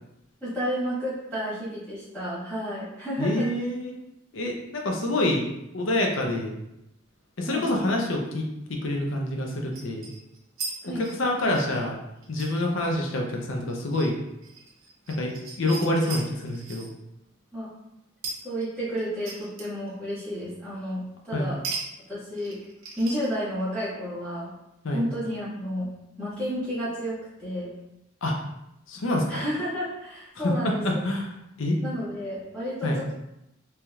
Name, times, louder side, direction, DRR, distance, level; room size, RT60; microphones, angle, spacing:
voice 1, 0.4-3.5 7.4-7.6 10.8-11.0 17.5-17.7 18.4-21.6 22.1-22.6 23.0-24.5 24.9-27.7 29.3-31.0 31.8-33.1, equal, 5° left, -11 dB, 1.4 m, -31 dB
voice 2, 3.2-4.0 4.3-5.4 5.7-6.5 7.4-8.4 8.8-10.1 10.8-12.0 12.3-14.2 15.2-15.3 15.6-16.9 21.3-21.5 24.8-25.0 28.2-28.3 28.9-29.4 30.4-31.3 31.6-31.8 32.8-33.0, left 1 dB, 70° left, 1 dB, 0.6 m, -26 dB
sound 1, 9.7-10.7 11.0-16.9 18.2-19.9 20.2-20.3 21.6-21.8 22.1-23.7, right 4 dB, 80° right, 0.7 m, -38 dB
3.3 x 2.8 x 2.3 m, 0.86 s
head